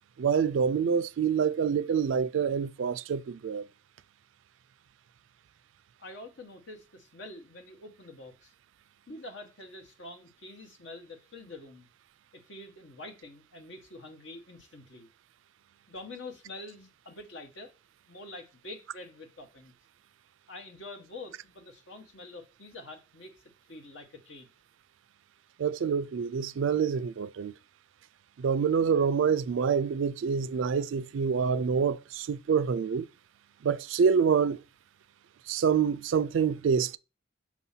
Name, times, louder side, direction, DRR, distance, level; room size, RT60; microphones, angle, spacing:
voice 1, 0.2-3.7 25.6-27.5 28.4-33.1 33.6-34.6 35.5-37.0, right 6 dB, 70° right, 0.3 m, -26 dB
voice 2, 6.0-8.5 9.1-11.9 12.3-15.1 15.9-17.7 18.1-19.7 20.5-23.4 23.7-24.5, left 2 dB, 65° left, 1.1 m, -46 dB
6.1 x 2.7 x 5.6 m
head